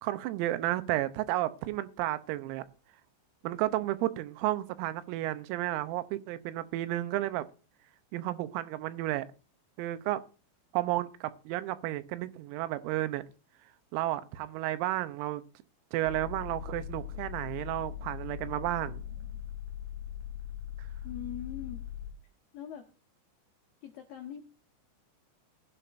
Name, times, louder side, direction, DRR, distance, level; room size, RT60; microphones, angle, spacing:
voice 1, 0.0-2.7 3.4-7.5 8.1-9.3 9.8-10.2 10.7-13.2 13.9-15.4 15.9-19.0, right 15 dB, 90° right, 3.5 m, -32 dB
sound 1, 16.0-22.1, left 9 dB, 65° right, 5.5 m, -40 dB
voice 2, 21.0-21.8 22.5-22.9 23.8-24.4, left 10 dB, 80° left, 2.1 m, -41 dB
19.0 x 11.0 x 2.6 m
omnidirectional pair, 6.0 m